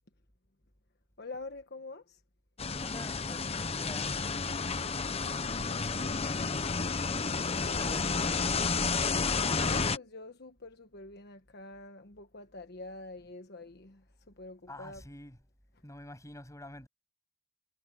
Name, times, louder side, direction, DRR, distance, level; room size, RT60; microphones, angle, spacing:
voice 1, 1.2-2.2 5.4-6.2 7.4-8.5 9.4-15.0, left 2 dB, 60° left, 1.3 m, -47 dB
sound 1, 2.6-10.0, left 4 dB, 30° left, 1.0 m, -31 dB
voice 2, 2.8-4.7 7.7-8.9 14.7-15.4 15.8-16.9, left 1 dB, 15° left, 7.7 m, -47 dB
head